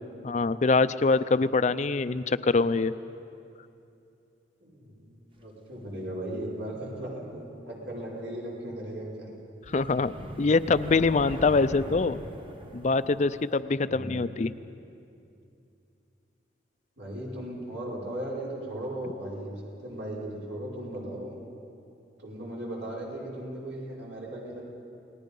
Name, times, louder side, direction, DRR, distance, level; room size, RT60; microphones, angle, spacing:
voice 1, 0.2-2.9 9.7-10.1 10.4-12.2 12.7-14.5, left 3 dB, 40° left, 13 dB, 0.4 m, -24 dB
voice 2, 4.6-9.3 13.9-14.3 17.0-19.5 19.8-21.4 22.2-24.6, right 1 dB, 80° right, -4 dB, 5.3 m, -37 dB
sound 1, 9.6-13.6, equal, 30° right, 1.2 m, -41 dB
28.5 x 19.0 x 5.4 m, 2.6 s
head